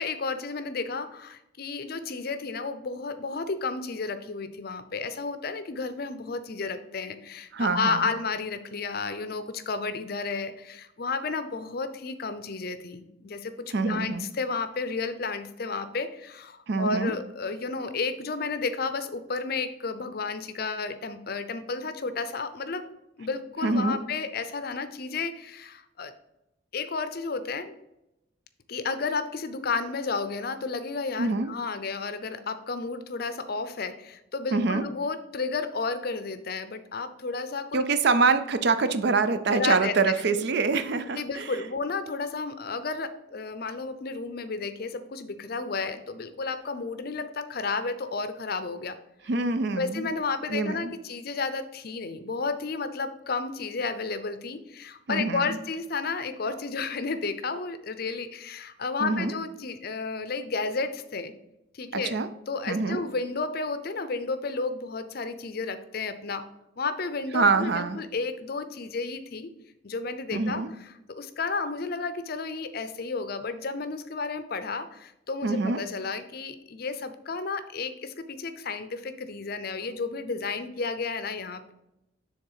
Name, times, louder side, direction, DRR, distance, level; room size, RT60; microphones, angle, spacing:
voice 1, 0.0-22.9 23.2-26.1 26.7-27.8 28.7-37.8 39.5-40.4 41.2-49.0 49.8-61.3 61.7-62.2 62.5-66.4 66.8-69.5 69.8-81.7, left 4 dB, 50° left, 11 dB, 0.5 m, -32 dB
voice 2, 7.5-8.1 13.7-14.3 16.7-17.1 23.6-24.0 31.2-31.5 34.5-34.8 37.7-41.6 49.3-50.1 50.5-50.9 55.1-55.5 59.0-59.3 61.9-62.3 62.7-63.0 67.3-68.0 70.3-70.7 75.4-75.8, right 4 dB, 55° right, 11 dB, 0.5 m, -25 dB
6.9 x 3.6 x 5.5 m, 0.88 s
head